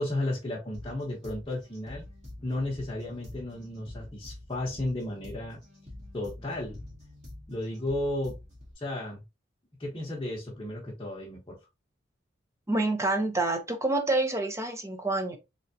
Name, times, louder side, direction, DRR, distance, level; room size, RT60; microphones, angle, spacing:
voice 1, 0.0-2.0 2.4-5.6 6.1-6.8 7.5-8.4 8.8-9.2 9.8-11.6, left 1 dB, 25° left, 1.0 m, -33 dB
sound 1, 0.7-8.7, left 1 dB, 35° right, 2.0 m, -46 dB
voice 2, 12.7-15.4, right 2 dB, 15° right, 0.7 m, -27 dB
3.9 x 3.5 x 2.7 m
head